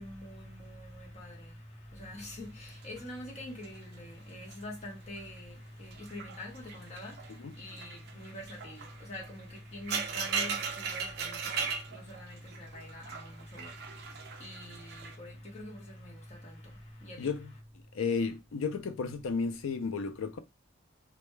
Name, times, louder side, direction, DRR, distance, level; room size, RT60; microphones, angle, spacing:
voice 1, 0.0-1.6 1.9-14.1 14.4-17.3, left 1 dB, 35° left, 0.9 m, -45 dB
sound 1, 2.3-4.7 5.0-5.4 5.8-15.1, right 5 dB, 50° right, 0.4 m, -39 dB
voice 2, 17.2-17.5 17.9-20.4, left 5 dB, 90° left, 0.4 m, -33 dB
2.2 x 2.0 x 3.0 m
head